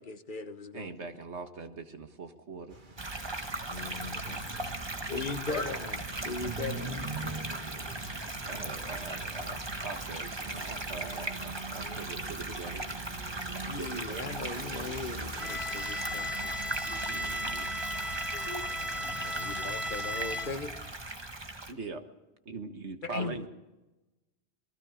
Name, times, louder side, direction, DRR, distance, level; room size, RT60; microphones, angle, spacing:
voice 1, 0.0-1.0 3.7-4.5 5.1-7.1 13.7-16.6 17.2-17.3 19.2-20.7 23.0-23.5, left 4 dB, 50° left, 9 dB, 1.3 m, -39 dB
voice 2, 0.7-2.8 8.4-12.8 13.8-14.2 17.1-17.7 21.7-22.0 22.5-23.5, right 4 dB, 80° right, 7 dB, 1.9 m, -42 dB
sound 1, 2.7-20.6, right 3 dB, 45° right, 2.2 m, -47 dB
sound 2, 3.0-21.7, right 2 dB, 25° right, 1.4 m, -38 dB
voice 3, 5.0-5.7 7.2-8.8 10.2-10.3 11.8-12.1 13.5-13.7 16.8-17.5 18.3-18.6 19.0-19.1, left 4 dB, 75° left, 5 dB, 2.1 m, -44 dB
Bowed string instrument, 15.4-20.8, left 1 dB, ahead, 1.7 m, -36 dB
27.5 x 20.0 x 5.0 m, 1.1 s
omnidirectional pair, 1.1 m